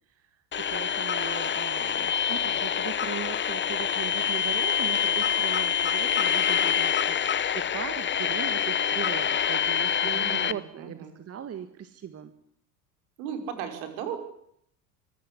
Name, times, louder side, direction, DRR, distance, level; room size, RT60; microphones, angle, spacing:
voice 1, 0.1-12.3, right 9 dB, 30° right, 11 dB, 1.8 m, -39 dB
sound 1, 0.5-10.5, left 8 dB, 25° left, 1.2 m, -26 dB
voice 2, 10.0-11.1 13.2-14.2, right 7 dB, 60° right, 7 dB, 5.4 m, -36 dB
25.0 x 15.5 x 10.0 m, 0.70 s
figure-of-eight pair, 70°, 47 cm